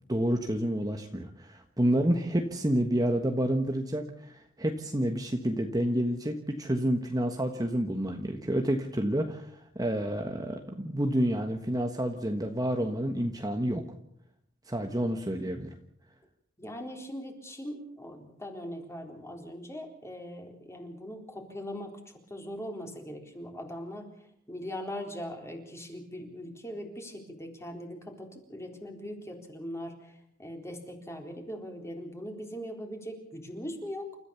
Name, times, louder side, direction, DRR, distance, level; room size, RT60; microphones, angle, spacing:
voice 1, 0.1-13.8 14.7-15.7, right 1 dB, 20° right, 4 dB, 1.4 m, -29 dB
voice 2, 16.6-34.1, equal, 15° left, 3 dB, 4.0 m, -40 dB
29.0 x 14.0 x 7.1 m, 0.72 s
head